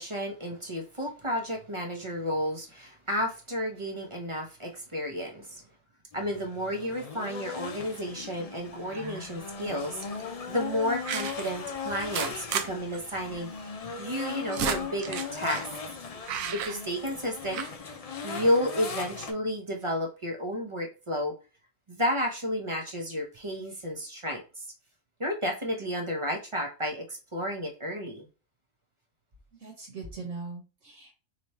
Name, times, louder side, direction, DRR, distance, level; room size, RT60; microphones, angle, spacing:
voice 1, 0.0-5.6 6.1-13.7 14.0-15.7 16.5-17.7 18.2-21.3 21.9-24.7 25.2-28.3, equal, 30° right, 1 dB, 0.7 m, -32 dB
sound 1, 6.1-19.3, left 5 dB, 70° left, 0.3 m, -38 dB
sound 2, 8.9-9.3 10.0-10.2 11.1-11.5 12.0-12.7 12.9-13.0 13.3-13.4 14.1-15.7 16.3-17.3 17.5-17.7, right 8 dB, 85° right, 1.0 m, -33 dB
voice 2, 29.6-31.2, right 4 dB, 65° right, 0 dB, 1.4 m, -40 dB
3.3 x 3.0 x 4.2 m, 0.32 s
omnidirectional pair, 1.4 m